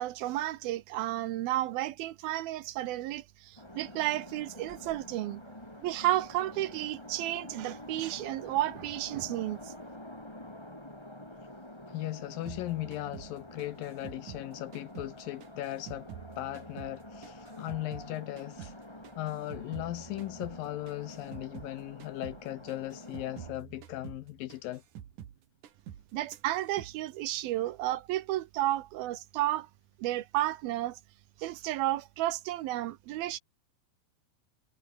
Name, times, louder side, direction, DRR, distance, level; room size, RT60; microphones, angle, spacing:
voice 1, 0.0-5.4 5.8-9.7 26.1-29.7 30.0-31.0 31.4-33.4, right 15 dB, 75° right, 2.6 m, -32 dB
sound 1, 3.6-23.5, left 1 dB, 5° left, 3.7 m, -48 dB
voice 2, 11.9-16.1 16.4-18.7 19.2-24.8, left 15 dB, 75° left, 2.2 m, -38 dB
sound 2, 12.5-15.2 15.4-18.1 18.4-21.7 22.0-22.4 22.7-25.4 25.6-26.1 26.3-27.0, right 10 dB, 55° right, 3.1 m, -48 dB
omnidirectional pair, 4.6 m